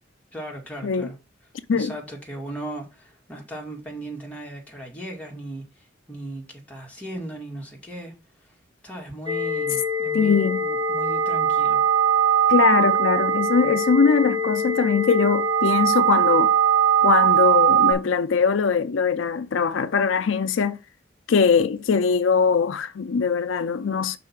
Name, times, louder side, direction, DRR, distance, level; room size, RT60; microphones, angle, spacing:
voice 1, 0.3-1.1 1.7-8.6 8.8-11.8, right 1 dB, 5° left, 1.9 m, -37 dB
sound 1, 9.3-17.9, right 6 dB, 25° right, 1.8 m, -21 dB
voice 2, 10.1-10.6 12.5-16.5 17.0-20.8 21.3-24.2, left 5 dB, 85° left, 0.5 m, -21 dB
5.5 x 4.1 x 5.9 m
head